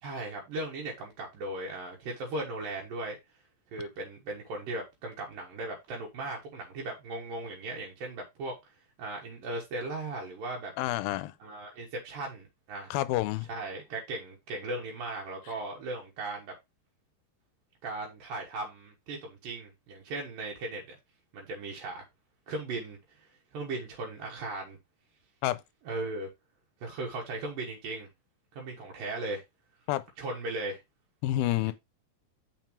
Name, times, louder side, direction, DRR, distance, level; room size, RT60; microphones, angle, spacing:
voice 1, 0.0-3.2 3.7-8.6 9.0-10.7 11.4-13.0 13.5-16.5 17.8-21.0 21.3-22.0 22.5-23.3 23.5-24.8 25.8-26.3 26.8-28.1 28.5-29.4 30.2-30.8, right 2 dB, 70° right, 2.9 m, -37 dB
voice 2, 10.8-11.3 12.9-13.5 25.4-25.6 29.9-30.0 31.2-31.7, left 15 dB, 85° left, 2.3 m, -28 dB
7.1 x 5.9 x 3.1 m
omnidirectional pair, 4.2 m